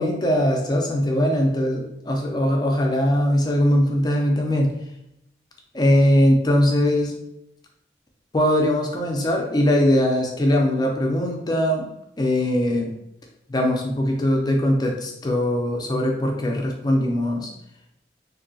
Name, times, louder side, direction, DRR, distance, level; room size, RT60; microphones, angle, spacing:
voice 1, 0.0-4.7 5.7-7.2 8.3-11.8 12.2-12.9 13.5-17.5, left 1 dB, 25° left, 1 dB, 0.4 m, -21 dB
2.8 x 2.6 x 2.6 m, 0.81 s
head